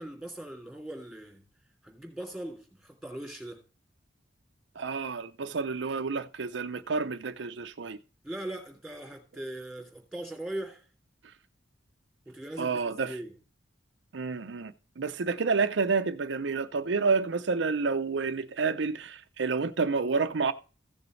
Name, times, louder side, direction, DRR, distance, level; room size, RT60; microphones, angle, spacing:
voice 1, 0.0-1.4 1.8-3.6 8.2-10.8 12.3-13.3, right 1 dB, ahead, 3.0 m, -40 dB
voice 2, 4.8-8.0 12.6-13.2 14.1-20.5, right 4 dB, 75° right, 0.6 m, -29 dB
15.5 x 6.9 x 3.2 m
head